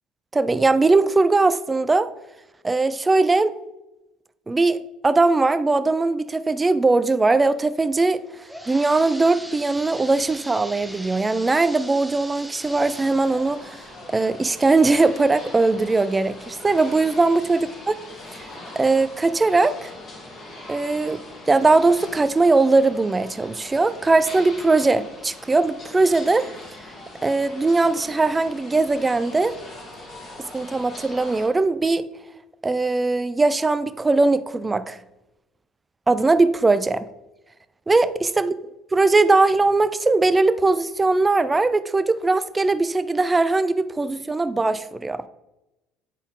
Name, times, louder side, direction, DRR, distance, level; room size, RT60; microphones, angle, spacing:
voice 1, 0.3-2.1 2.6-3.5 4.5-8.2 8.7-13.7 14.1-17.6 18.3-18.4 18.8-19.9 20.7-21.2 21.5-26.5 27.2-29.5 30.5-32.1 32.6-35.0 36.1-37.0 37.9-38.5 38.9-45.2, right 3 dB, 20° right, 0.5 m, -20 dB
sound 1, 8.1-15.7 16.2-16.3 17.0-17.1 17.5-17.6, equal, ahead, 0.9 m, -41 dB
sound 2, 12.7-31.5, left 1 dB, 45° left, 2.1 m, -41 dB
9.1 x 4.1 x 3.7 m
supercardioid pair, 90°, 0 cm